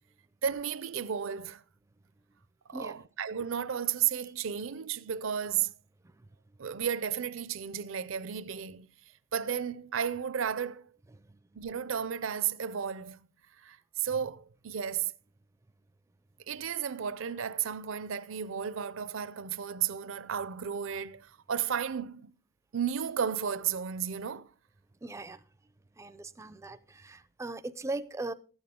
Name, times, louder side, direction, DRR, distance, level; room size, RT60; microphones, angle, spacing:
voice 1, 0.4-1.6 2.7-5.7 6.6-8.9 9.3-10.9 11.6-13.3 13.6-15.1 16.5-22.3 22.7-24.5, right 8 dB, 70° right, 0.5 m, -33 dB
voice 2, 25.0-25.4 26.0-28.3, right 2 dB, 15° right, 0.4 m, -39 dB
13.5 x 8.7 x 3.6 m
head